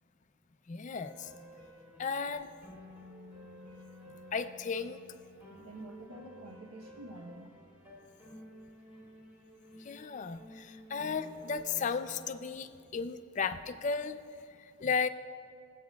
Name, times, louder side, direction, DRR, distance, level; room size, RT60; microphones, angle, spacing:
voice 1, 0.7-1.3 2.0-2.5 4.3-5.0 9.8-14.2 14.6-15.1, left 5 dB, 35° left, 10 dB, 0.4 m, -34 dB
sound 1, 1.0-12.3, equal, 10° right, 1.9 m, -53 dB
voice 2, 5.6-7.6, right 1 dB, 80° right, 0 dB, 0.8 m, -48 dB
22.0 x 8.3 x 2.3 m, 2.4 s
head